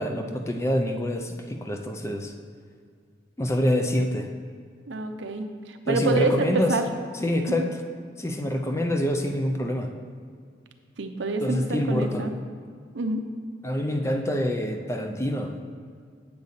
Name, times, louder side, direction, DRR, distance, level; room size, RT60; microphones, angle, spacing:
voice 1, 0.0-2.3 3.4-4.3 5.9-6.8 7.2-7.7 8.2-9.9 11.4-12.3 13.6-15.5, left 1 dB, 15° left, 4 dB, 0.5 m, -26 dB
voice 2, 4.9-6.8 7.5-7.7 11.0-12.3 12.9-13.2, right 2 dB, 75° right, 6 dB, 0.6 m, -27 dB
8.4 x 6.8 x 4.0 m, 2.2 s
head